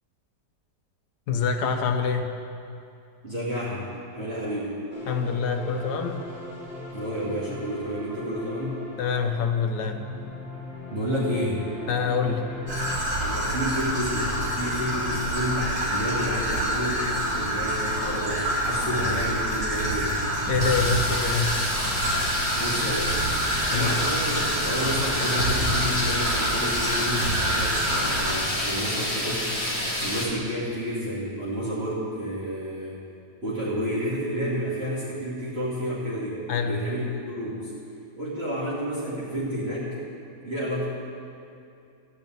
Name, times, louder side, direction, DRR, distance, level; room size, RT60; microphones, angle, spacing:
voice 1, 1.3-2.3 5.1-6.2 9.0-10.0 11.9-12.4 20.5-21.5 23.7-23.9 36.5-36.8, left 6 dB, 70° left, 5 dB, 1.4 m, -25 dB
voice 2, 3.2-4.8 6.9-8.8 10.9-11.7 13.2-20.2 22.5-23.2 23.7-33.0 33.4-37.7 38.2-39.9 40.4-40.9, equal, 35° right, -11 dB, 2.8 m, -30 dB
sound 1, 4.9-12.9, left 2 dB, 5° right, 2.7 m, -39 dB
Traffic noise roadway noise / Trickle dribble, 12.7-28.3, right 1 dB, 55° right, 3.7 m, -27 dB
sound 2, 20.6-30.2, left 1 dB, 15° left, 1.9 m, -29 dB
14.0 x 5.4 x 9.2 m, 2.6 s
omnidirectional pair, 1.9 m